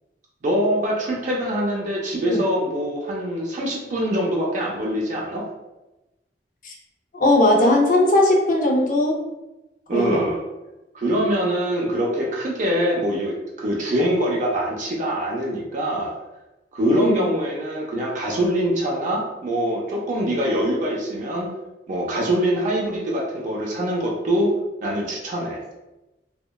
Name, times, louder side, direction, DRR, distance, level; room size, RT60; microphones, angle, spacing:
voice 1, 0.4-5.5 9.9-10.4 10.9-16.1 16.7-21.5 21.9-24.5 24.8-25.6, equal, 45° right, -2 dB, 0.4 m, -24 dB
voice 2, 7.1-9.2 9.9-10.2 16.9-17.3, left 1 dB, 50° left, -1 dB, 0.5 m, -18 dB
2.8 x 2.1 x 2.2 m, 1.0 s
head